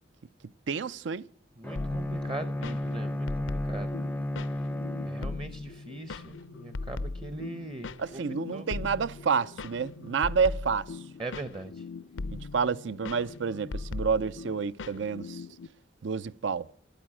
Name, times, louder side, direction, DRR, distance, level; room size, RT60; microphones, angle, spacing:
voice 1, 0.7-1.2 8.0-10.9 12.3-15.4 16.0-16.7, right 5 dB, 75° right, 0.5 m, -29 dB
Bowed string instrument, 1.6-5.8, left 1 dB, 10° left, 0.5 m, -33 dB
voice 2, 1.6-3.9 5.1-8.2 8.5-8.7 11.2-11.8, right 2 dB, 25° right, 0.8 m, -40 dB
sound 1, 1.8-15.7, left 3 dB, 85° left, 0.5 m, -39 dB
12.0 x 9.0 x 10.0 m
head